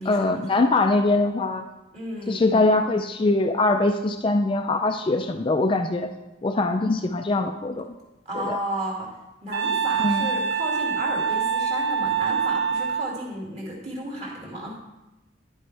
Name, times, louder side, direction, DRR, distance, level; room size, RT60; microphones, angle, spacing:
voice 1, 0.1-1.6 2.3-6.1 6.4-7.9 8.3-8.6 10.0-10.3, left 2 dB, 25° left, 5 dB, 0.3 m, -22 dB
voice 2, 1.9-2.8 8.3-9.1 9.4-14.7, right 1 dB, 35° right, -3 dB, 2.4 m, -33 dB
Wind instrument woodwind instrument, 9.5-13.2, right 6 dB, 55° right, 0.5 m, -25 dB
11.0 x 7.6 x 3.3 m, 1.0 s
head